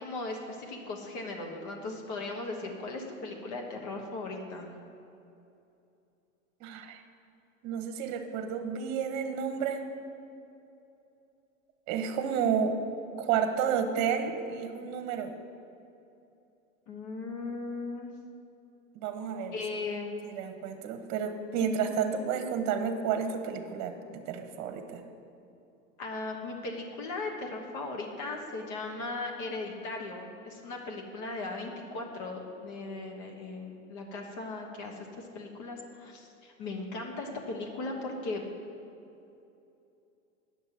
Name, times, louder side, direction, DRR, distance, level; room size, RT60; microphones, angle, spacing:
voice 1, 0.0-4.7 16.9-18.1 19.5-20.2 26.0-38.4, left 3 dB, 45° left, 1 dB, 1.4 m, -38 dB
voice 2, 6.6-7.0 7.6-9.8 11.9-12.7 13.2-15.3 19.0-19.5 20.2-25.0, right 7 dB, 40° right, 7 dB, 1.1 m, -31 dB
9.6 x 6.6 x 5.9 m, 2.8 s
hypercardioid pair, 95°, 41 cm